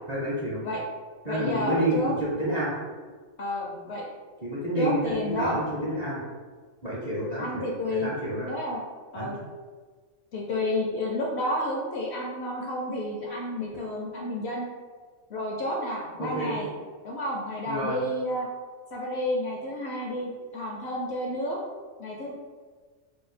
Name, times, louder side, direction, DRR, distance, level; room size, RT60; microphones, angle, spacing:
voice 1, 0.1-0.6 1.3-2.7 4.4-6.2 6.8-7.7 8.0-8.5 9.2-9.3 16.2-16.6 17.7-18.0, right 1 dB, 40° right, -7 dB, 0.6 m, -29 dB
voice 2, 1.2-2.1 3.4-4.0 4.8-5.5 7.4-8.1 8.4-8.8 9.1-9.4 10.3-14.7 15.3-16.7 17.0-18.5 18.9-21.6 22.0-22.3, left 1 dB, 65° left, -3 dB, 0.7 m, -30 dB
2.8 x 2.2 x 4.0 m, 1.5 s
omnidirectional pair, 1.4 m